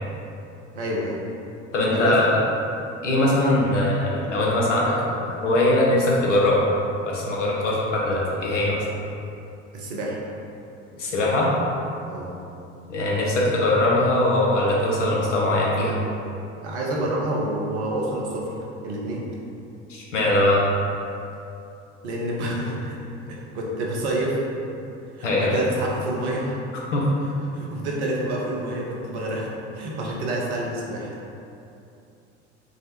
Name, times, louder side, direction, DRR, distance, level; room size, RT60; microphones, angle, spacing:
voice 1, 0.7-1.2 1.9-2.2 9.7-10.2 12.1-12.4 16.6-19.3 22.0-23.0 23.3-24.4 25.2-26.6 27.5-31.2, right 1 dB, 65° right, -3 dB, 0.7 m, -28 dB
voice 2, 1.7-2.3 3.0-6.7 7.0-8.8 11.0-11.5 12.9-16.0 19.9-20.6 25.2-25.5 26.7-27.0, left 1 dB, 85° left, -4 dB, 0.6 m, -21 dB
3.5 x 2.1 x 2.8 m, 2.7 s
figure-of-eight pair, 60°, 36 cm